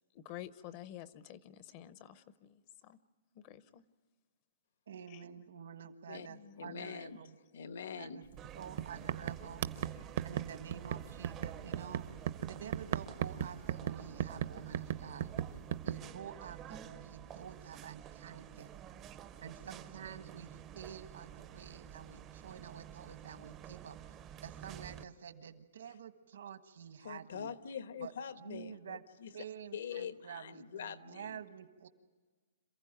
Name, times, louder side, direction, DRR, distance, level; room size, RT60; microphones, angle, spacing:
voice 1, 0.1-3.0 3.3-3.8 5.1-5.2 6.3-6.9, left 12 dB, 30° left, 15 dB, 0.6 m, -50 dB
voice 2, 4.9-7.3 8.0-8.2 8.5-9.6 10.2-12.1 12.5-15.3 15.8-18.7 19.4-24.0 24.4-27.5 28.0-29.0 29.3-31.9, right 8 dB, 75° right, 10 dB, 1.5 m, -49 dB
voice 3, 6.6-7.2 7.5-8.3 27.0-29.3 29.7-31.4, left 7 dB, 70° left, 12 dB, 1.1 m, -44 dB
sound 1, 8.3-8.5 8.8-16.0, right 10 dB, 50° right, 0.8 m, -37 dB
sound 2, 8.4-25.0, right 10 dB, 15° right, 0.6 m, -50 dB
27.5 x 15.5 x 9.0 m, 1.4 s
hypercardioid pair, 175°, 0 cm